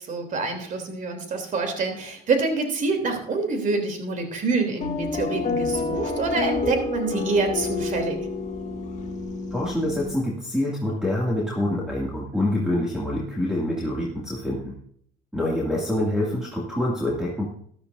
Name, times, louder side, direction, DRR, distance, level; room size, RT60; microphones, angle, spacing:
voice 1, 0.0-8.2, right 3 dB, 50° right, 5 dB, 3.2 m, -26 dB
sound 1, 4.8-10.2, left 3 dB, 45° left, 1.6 m, -29 dB
voice 2, 9.5-14.7 15.3-17.5, left 1 dB, 5° right, -4 dB, 2.3 m, -26 dB
14.0 x 12.0 x 2.6 m, 0.63 s
cardioid pair, 110°, 17 cm